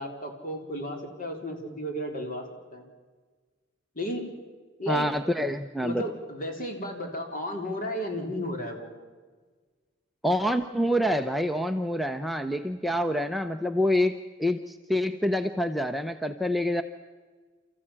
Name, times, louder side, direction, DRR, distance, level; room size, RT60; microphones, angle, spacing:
voice 1, 0.0-2.4 2.7-2.8 4.0-4.3 4.8-5.1 5.8-8.9, equal, 45° left, 3 dB, 4.1 m, -33 dB
voice 2, 4.9-6.0 10.2-16.8, equal, ahead, 6 dB, 0.7 m, -27 dB
29.0 x 14.5 x 8.8 m, 1.5 s
head